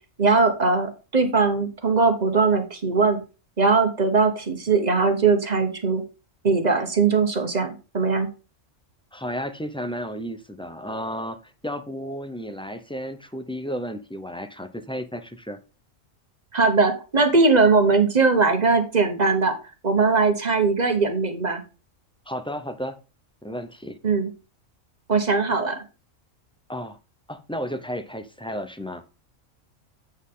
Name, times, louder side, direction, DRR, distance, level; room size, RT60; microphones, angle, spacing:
voice 1, 0.2-3.2 3.6-6.0 6.4-8.3 16.5-19.5 19.8-21.6 24.0-24.3 25.1-25.8, right 4 dB, 35° right, 1.2 m, -20 dB
voice 2, 9.1-15.6 22.3-23.0 23.4-24.0 26.7-27.0 27.3-29.0, equal, 5° left, 0.4 m, -33 dB
7.9 x 6.2 x 3.7 m
omnidirectional pair, 1.3 m